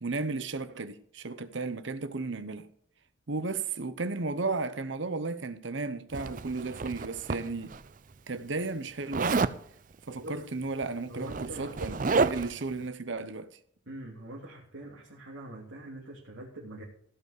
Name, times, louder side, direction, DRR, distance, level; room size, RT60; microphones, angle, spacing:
voice 1, 0.0-2.7 3.3-7.7 8.3-9.5 10.1-13.6, right 3 dB, 70° right, 0.9 m, -34 dB
Zipper (clothing), 6.1-7.8 9.1-9.6 10.7-10.8 11.1-12.6, right 4 dB, 40° right, 0.5 m, -30 dB
voice 2, 11.1-11.7 13.9-16.8, right 1 dB, 90° right, 2.8 m, -43 dB
16.0 x 5.4 x 6.6 m
head